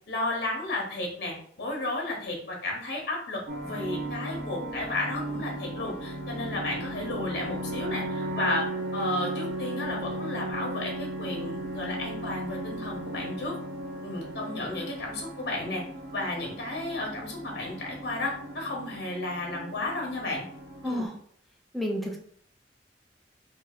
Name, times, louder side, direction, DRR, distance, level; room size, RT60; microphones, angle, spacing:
voice 1, 0.1-8.7 8.9-13.6 14.0-15.8 16.1-20.4 20.8-21.0, left 2 dB, 60° left, -1 dB, 0.9 m, -33 dB
sound 1, 3.5-21.1, right 1 dB, 70° right, 0.7 m, -36 dB
voice 2, 21.7-22.2, equal, ahead, -1 dB, 0.5 m, -30 dB
4.4 x 2.7 x 2.4 m, 0.63 s
head